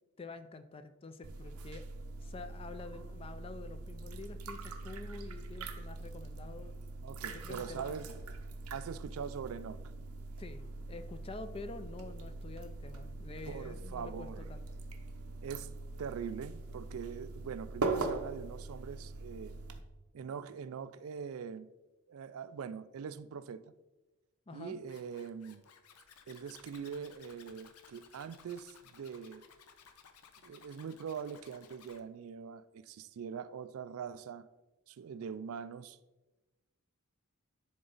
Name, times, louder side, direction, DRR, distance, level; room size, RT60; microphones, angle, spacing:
voice 1, 0.2-1.8 2.2-6.8 7.3-8.0 10.4-14.6 24.5-24.8, left 3 dB, 25° left, 0.4 m, -47 dB
sound 1, 1.2-19.8, right 3 dB, 90° right, 0.7 m, -42 dB
voice 2, 7.0-8.2 8.7-9.8 13.5-14.5 15.4-15.7 16.0-19.6 20.1-21.7 22.1-23.7 24.5-25.6 26.3-29.4 30.4-34.5 34.9-36.0, right 6 dB, 70° right, 0.3 m, -43 dB
Zipper (clothing), 24.9-32.0, left 7 dB, 90° left, 0.7 m, -59 dB
10.0 x 4.0 x 3.9 m
head